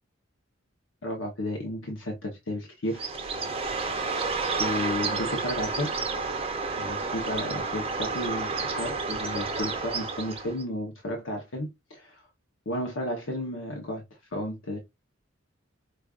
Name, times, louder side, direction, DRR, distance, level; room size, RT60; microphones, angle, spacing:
voice 1, 1.0-3.1 4.6-5.9 6.8-12.3 12.7-14.0 14.3-14.8, left 1 dB, 70° left, 0.9 m, -33 dB
Bird, 2.9-10.6, right 4 dB, 30° right, 0.6 m, -30 dB
5.1 x 2.4 x 2.3 m
head